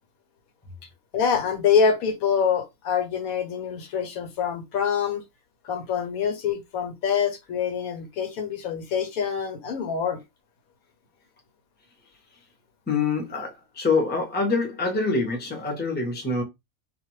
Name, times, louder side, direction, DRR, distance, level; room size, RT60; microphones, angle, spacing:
voice 1, 1.1-5.2 5.6-10.2, left 6 dB, 85° left, 1.2 m, -25 dB
voice 2, 12.9-16.4, left 3 dB, 10° left, 0.6 m, -25 dB
2.5 x 2.2 x 3.0 m
omnidirectional pair, 1.4 m